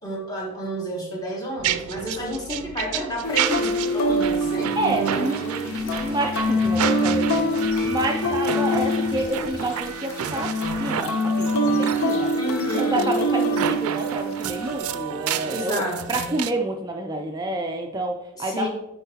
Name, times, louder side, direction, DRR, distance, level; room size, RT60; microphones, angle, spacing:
voice 1, 0.0-6.0 12.3-13.7 15.5-16.3 18.3-18.7, equal, 15° left, -1 dB, 1.2 m, -30 dB
sound 1, 1.6-16.5, right 8 dB, 85° right, 0.4 m, -31 dB
sound 2, 3.2-14.8, equal, 80° left, 0.7 m, -25 dB
voice 2, 4.8-5.4 6.0-12.3 12.8-15.8 16.1-18.7, right 1 dB, 20° right, 3 dB, 0.3 m, -28 dB
sound 3, 6.6-11.0 11.4-12.2, equal, 45° left, 1.7 m, -41 dB
9.3 x 4.5 x 2.8 m, 0.89 s
head